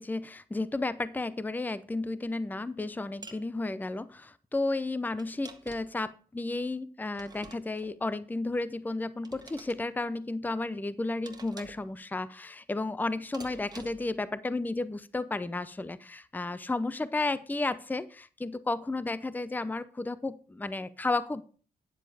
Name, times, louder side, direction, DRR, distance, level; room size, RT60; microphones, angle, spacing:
voice 1, 0.0-21.4, left 2 dB, 10° left, 15 dB, 0.6 m, -33 dB
sound 1, 3.2-3.5 5.2-6.0 7.1-7.9 9.2-9.8 11.3-11.9 13.3-14.1, right 3 dB, 25° right, 1.5 m, -48 dB
10.0 x 7.3 x 4.9 m, 0.39 s
cardioid pair, 100°, 16 cm